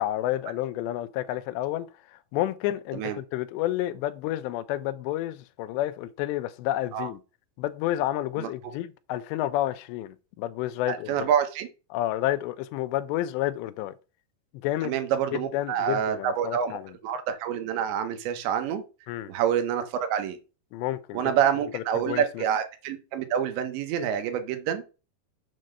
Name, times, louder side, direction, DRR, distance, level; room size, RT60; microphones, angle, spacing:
voice 1, 0.0-7.2 7.6-11.3 11.9-13.9 14.6-14.9 15.3-16.9 19.1-19.3 20.7-21.3 21.7-22.4, left 14 dB, 85° left, 2.8 m, -30 dB
voice 2, 10.9-11.7 14.8-16.7 17.0-18.8 19.3-19.8 20.1-20.4 21.1-24.8, right 9 dB, 85° right, 3.3 m, -27 dB
7.7 x 3.8 x 6.5 m
omnidirectional pair, 5.0 m